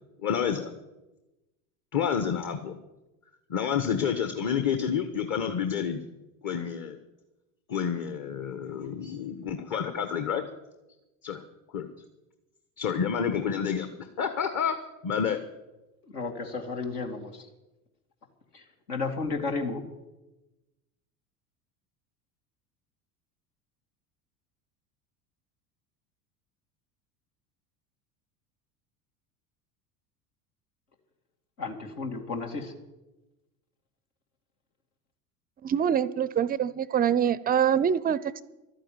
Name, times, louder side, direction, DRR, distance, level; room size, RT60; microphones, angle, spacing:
voice 1, 0.2-0.7 1.9-2.7 3.5-6.0 6.4-7.0 7.7-10.4 11.2-11.4 11.7-11.9 12.8-14.7 15.0-15.4, left 7 dB, 40° left, 8 dB, 1.3 m, -29 dB
voice 2, 16.0-17.5 18.5-19.8 31.6-32.7, left 4 dB, 80° left, 3 dB, 2.3 m, -33 dB
voice 3, 35.6-38.4, right 8 dB, 20° right, 18 dB, 0.4 m, -25 dB
12.0 x 9.0 x 9.2 m, 1.0 s
hypercardioid pair, 80°, 46 cm